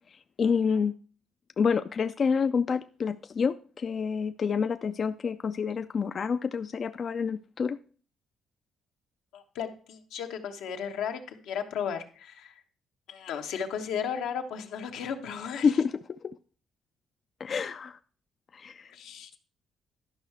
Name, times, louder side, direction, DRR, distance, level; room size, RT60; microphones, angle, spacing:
voice 1, 0.4-1.0 1.6-7.8 15.6-16.4 17.4-18.0 18.5-18.9, left 6 dB, 45° left, 10 dB, 0.3 m, -28 dB
voice 2, 9.3-12.5 13.1-15.7 18.9-19.4, left 7 dB, 90° left, 5 dB, 1.0 m, -35 dB
11.5 x 5.5 x 4.7 m, 0.42 s
cardioid pair, 90°, 0 cm